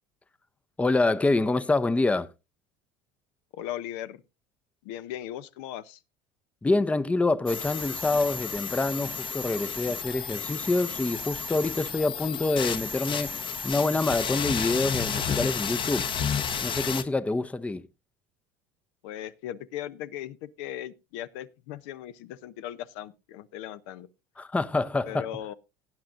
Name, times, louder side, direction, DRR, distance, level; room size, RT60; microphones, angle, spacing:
voice 1, 0.8-2.3 6.6-13.3 13.6-16.1 16.6-17.9 24.4-25.3, left 2 dB, 10° left, 0.5 m, -26 dB
voice 2, 3.5-4.2 4.8-6.0 19.0-24.1 25.0-25.5, left 12 dB, 80° left, 0.7 m, -38 dB
sound 1, 7.5-17.0, left 6 dB, 35° left, 0.8 m, -32 dB
18.0 x 8.8 x 2.5 m
supercardioid pair, 105°, 14 cm